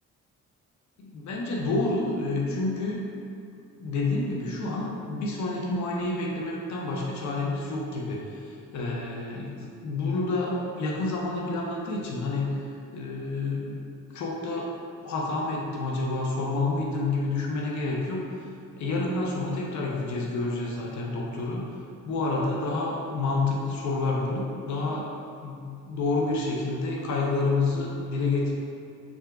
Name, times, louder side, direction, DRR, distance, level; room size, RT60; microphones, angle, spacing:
voice 1, 1.0-3.0 3.8-12.6 12.9-13.8 14.1-14.7 15.0-18.5 18.8-21.8 22.0-25.1 25.4-28.5, left 3 dB, 70° left, -2 dB, 0.8 m, -29 dB
6.1 x 3.5 x 2.4 m, 2.5 s
cardioid pair, 90°, 30 cm